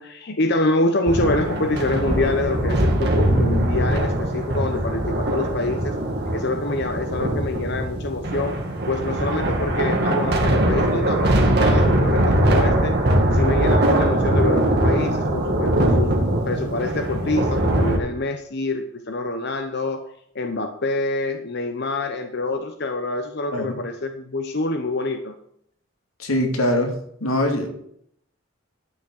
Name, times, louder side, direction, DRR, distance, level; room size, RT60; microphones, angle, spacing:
voice 1, 0.0-5.9 6.3-8.6 8.9-13.0 13.3-16.1 16.5-20.0 20.3-25.4, left 2 dB, 50° left, 6 dB, 0.9 m, -26 dB
sound 1, 1.1-18.0, right 1 dB, 50° right, 2.1 m, -21 dB
voice 2, 26.2-26.9 27.2-27.7, left 1 dB, 90° left, 4 dB, 2.4 m, -22 dB
12.0 x 6.3 x 6.6 m, 0.70 s
head